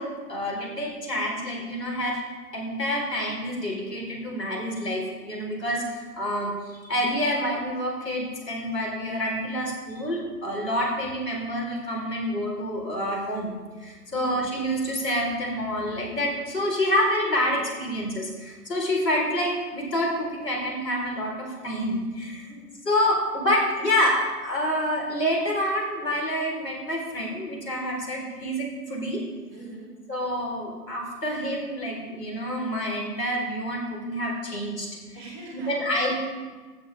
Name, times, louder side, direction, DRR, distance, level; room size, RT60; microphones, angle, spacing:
voice 1, 0.0-2.2 2.5-13.5 13.8-22.5 22.9-29.2 30.1-34.9 35.5-36.2, equal, 80° left, -1 dB, 4.3 m, -27 dB
voice 2, 14.1-14.4 22.3-23.0 29.5-29.9 35.1-35.7, right 2 dB, 20° right, -4 dB, 2.5 m, -43 dB
14.5 x 9.5 x 3.5 m, 1.3 s
figure-of-eight pair, 140°, 48 cm